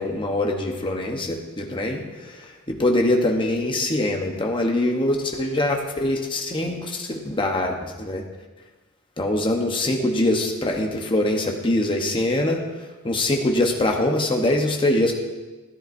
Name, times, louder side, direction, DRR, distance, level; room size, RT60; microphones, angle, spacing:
voice 1, 0.0-2.0 2.7-8.2 9.2-12.6 13.0-15.1, left 1 dB, 25° left, 2 dB, 1.0 m, -23 dB
14.0 x 10.0 x 2.7 m, 1.2 s
head